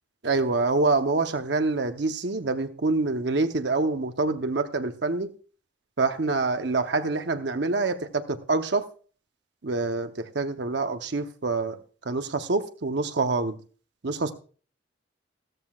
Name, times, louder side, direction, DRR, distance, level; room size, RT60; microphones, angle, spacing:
voice 1, 0.2-5.3 6.0-8.9 9.6-11.8 12.1-13.6 14.0-14.3, right 3 dB, 65° right, 0.8 m, -26 dB
14.0 x 13.5 x 2.3 m
head